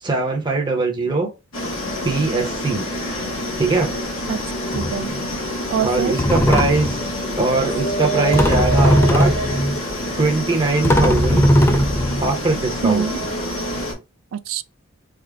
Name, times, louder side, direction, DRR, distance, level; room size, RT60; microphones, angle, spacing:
voice 1, 0.0-1.3 2.0-2.8 3.6-3.9 5.8-7.0 7.4-9.3 10.2-11.5 12.2-13.1, right 3 dB, 20° right, 0.7 m, -21 dB
sound 1, 1.5-13.9, equal, 70° left, 1.6 m, -26 dB
sound 2, 3.6-3.8 4.7-5.1 5.9-6.0 6.2-7.1 8.3-9.8 10.4-10.5 10.8-12.7, equal, 10° left, 0.4 m, -18 dB
voice 2, 4.7-5.2 5.7-6.1 12.8-13.2 14.3-14.6, right 6 dB, 70° right, 0.3 m, -23 dB
3.6 x 2.1 x 3.4 m
head